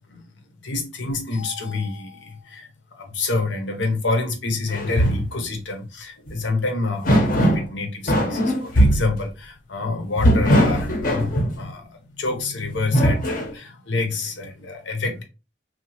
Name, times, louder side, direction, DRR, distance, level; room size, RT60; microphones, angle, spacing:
voice 1, 0.6-15.2, left 3 dB, 85° left, 0.7 m, -27 dB
sound 1, 4.7-5.3 6.3-6.4 7.0-7.7 8.1-9.1 10.2-11.6 12.7-13.5, equal, 45° left, 0.7 m, -19 dB
2.7 x 2.2 x 2.8 m
head